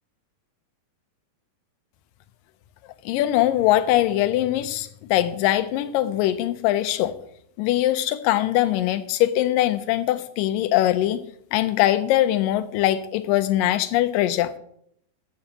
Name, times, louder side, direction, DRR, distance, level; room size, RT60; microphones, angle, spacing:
voice 1, 3.1-7.1 7.6-11.2 11.5-14.5, left 13 dB, 80° left, 2.3 m, -22 dB
21.0 x 7.2 x 2.9 m
omnidirectional pair, 4.0 m